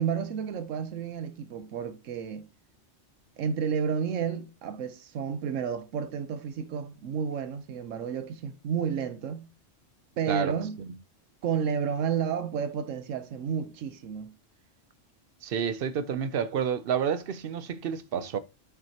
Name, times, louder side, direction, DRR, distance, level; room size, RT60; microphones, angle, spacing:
voice 1, 0.0-2.5 3.4-9.5 10.2-10.8 11.4-14.3, right 7 dB, 90° right, 1.1 m, -31 dB
voice 2, 10.3-10.9 15.4-18.4, right 7 dB, 60° right, 0.7 m, -30 dB
8.7 x 6.0 x 2.8 m
omnidirectional pair, 1.3 m